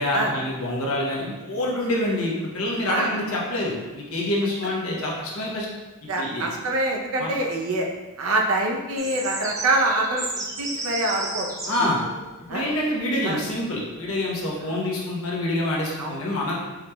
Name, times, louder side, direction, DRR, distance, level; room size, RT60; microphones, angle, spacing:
voice 1, 0.0-5.7 6.0-6.4 7.2-7.3 11.6-12.0 12.5-16.6, left 1 dB, 70° left, -3 dB, 0.9 m, -26 dB
voice 2, 6.1-7.9 8.2-11.9 12.5-12.7 13.2-13.4 14.6-14.7 16.0-16.2, right 2 dB, 70° right, 0 dB, 0.6 m, -25 dB
sound 1, 9.0-14.4, right 2 dB, 15° right, 0.4 m, -34 dB
4.7 x 3.1 x 2.2 m, 1.2 s
head